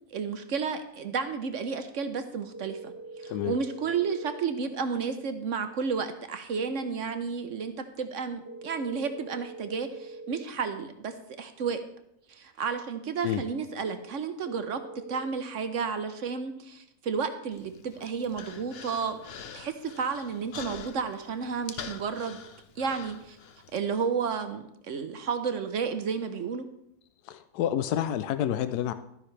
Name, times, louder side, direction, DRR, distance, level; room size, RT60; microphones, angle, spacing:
voice 1, 0.1-11.8 12.3-14.8 15.1-19.2 19.5-22.4 22.8-23.4 23.7-26.6, right 5 dB, 60° right, 9 dB, 1.0 m, -32 dB
sound 1, 2.5-4.4 8.4-10.4 14.4-15.3, right 3 dB, 30° right, 0.4 m, -43 dB
Human voice, 17.5-23.8, left 6 dB, 50° left, 0.8 m, -45 dB
voice 2, 27.2-28.9, left 11 dB, 85° left, 11 dB, 1.1 m, -29 dB
12.5 x 9.8 x 3.3 m, 0.79 s
omnidirectional pair, 1.6 m